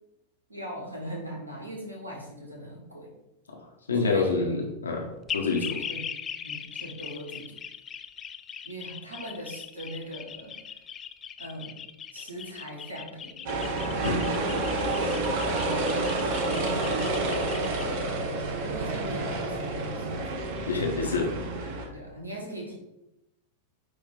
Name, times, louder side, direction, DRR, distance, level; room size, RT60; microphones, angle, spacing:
voice 1, 0.5-3.1 4.0-4.7 5.4-5.5 5.9-6.2 6.4-7.6 8.6-10.6 11.4-11.8 12.1-13.6 15.1-16.1 16.4-16.9 18.6-20.4 21.9-22.8, equal, 80° right, -1 dB, 1.9 m, -40 dB
voice 2, 3.9-5.8 14.0-14.3 20.7-21.3 21.6-21.7, left 4 dB, 70° left, 2 dB, 1.4 m, -27 dB
sound 1, 5.3-17.8, left 8 dB, 25° left, 0.4 m, -40 dB
sound 2, 13.5-21.9, right 2 dB, 50° right, 1.4 m, -29 dB
9.5 x 3.5 x 3.8 m, 0.92 s
figure-of-eight pair, 90°, 0 cm